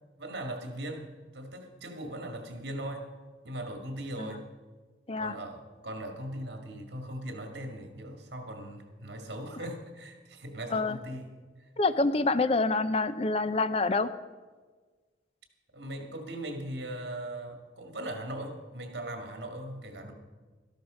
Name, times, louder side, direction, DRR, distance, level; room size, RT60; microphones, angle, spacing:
voice 1, 0.2-3.1 3.4-4.4 5.2-11.7 15.7-20.1, right 1 dB, 65° right, 4 dB, 2.1 m, -39 dB
voice 2, 11.8-14.1, left 3 dB, 35° left, 13 dB, 0.5 m, -27 dB
13.0 x 12.0 x 5.1 m, 1.4 s
head